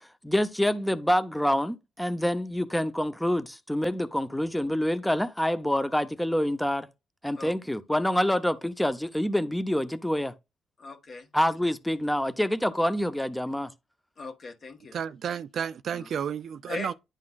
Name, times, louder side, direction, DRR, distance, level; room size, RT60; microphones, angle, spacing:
voice 1, 0.0-6.9 7.2-10.3 11.3-13.7, equal, 5° left, 0.7 m, -27 dB
voice 2, 7.3-7.7 10.8-11.3 14.2-15.0 15.9-16.1 16.7-16.9, left 4 dB, 45° left, 1.7 m, -39 dB
voice 3, 14.9-16.9, right 8 dB, 60° right, 0.3 m, -32 dB
10.5 x 3.8 x 2.4 m
cardioid pair, 90°, 0 cm